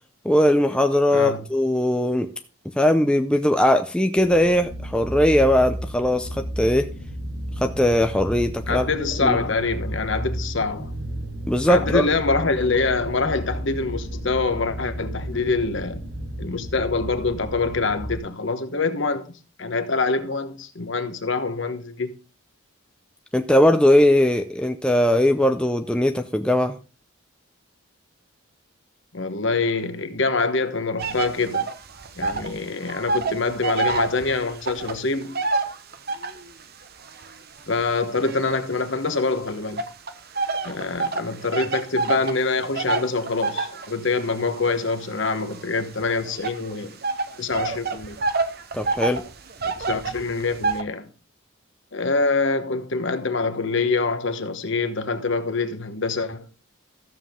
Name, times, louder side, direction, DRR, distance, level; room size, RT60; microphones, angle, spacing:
voice 1, 0.2-2.3 2.8-6.9 7.6-8.9 9.2-9.4 11.5-12.1 23.3-26.8 48.7-49.2, left 1 dB, 5° left, 0.5 m, -19 dB
sound 1, 4.2-18.2, equal, 80° right, 3.6 m, -33 dB
voice 2, 8.7-10.9 11.7-16.0 16.4-22.1 29.1-31.7 32.2-35.3 37.7-39.8 40.6-47.0 47.4-48.2 49.6-51.1 51.9-56.5, left 3 dB, 60° left, 1.1 m, -25 dB
sound 2, 31.0-32.6 32.8-36.5 37.1-39.1 39.8-50.8, right 4 dB, 45° right, 0.9 m, -28 dB
14.0 x 7.4 x 3.7 m
head